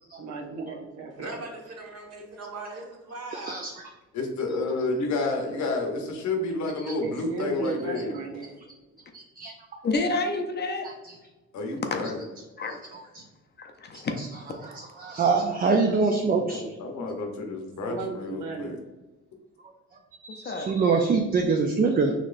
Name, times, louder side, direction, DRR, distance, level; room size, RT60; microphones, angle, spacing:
voice 1, 0.2-1.1 1.4-1.5 7.0-8.5 17.8-18.8, right 4 dB, 85° right, 0 dB, 0.9 m, -35 dB
voice 2, 1.2-3.6, right 2 dB, 55° right, -1 dB, 1.2 m, -39 dB
voice 3, 3.3-3.7 6.8-6.9 9.1-9.5 11.0-11.1 12.7-13.0 13.9-14.3 14.6-16.6 20.2-22.1, right 4 dB, 30° right, 3 dB, 0.4 m, -25 dB
voice 4, 4.1-8.1 11.5-12.2 16.3-18.8, left 3 dB, 70° left, 3 dB, 0.8 m, -30 dB
voice 5, 9.8-10.9 12.6-12.8 13.6-14.2 20.4-20.7, left 3 dB, 35° left, 5 dB, 0.5 m, -29 dB
4.1 x 3.0 x 2.5 m, 1.2 s
cardioid pair, 90°, 30 cm